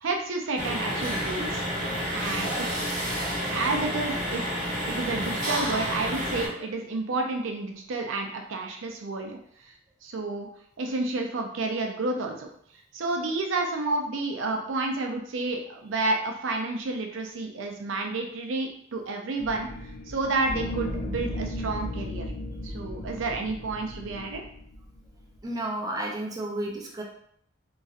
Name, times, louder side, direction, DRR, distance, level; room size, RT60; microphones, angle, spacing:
voice 1, 0.0-1.7 2.1-2.7 3.3-4.4 4.9-9.7 10.0-10.5 10.8-12.5 12.9-22.3 22.6-24.4, right 3 dB, 80° right, 2 dB, 0.5 m, -30 dB
sound 1, 0.6-6.5, equal, 45° right, 1.0 m, -30 dB
sound 2, 19.4-25.4, left 1 dB, 60° left, 0.5 m, -35 dB
voice 2, 25.4-27.0, right 1 dB, 20° right, -1 dB, 0.4 m, -32 dB
2.9 x 2.6 x 2.4 m, 0.64 s
head